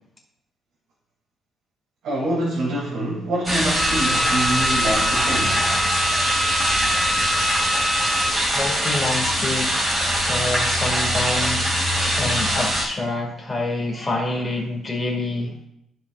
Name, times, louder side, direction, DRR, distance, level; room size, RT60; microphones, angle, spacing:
voice 1, 2.0-5.8, right 1 dB, 75° right, -6 dB, 2.6 m, -25 dB
sound 1, 3.4-12.8, equal, 15° right, 2.4 m, -22 dB
Wind instrument woodwind instrument, 3.8-8.4, left 1 dB, ahead, 0.5 m, -26 dB
voice 2, 8.5-9.8 10.3-15.6, left 2 dB, 20° left, 0 dB, 2.0 m, -27 dB
13.0 x 5.9 x 2.4 m, 0.77 s
cardioid pair, 125°, 0 cm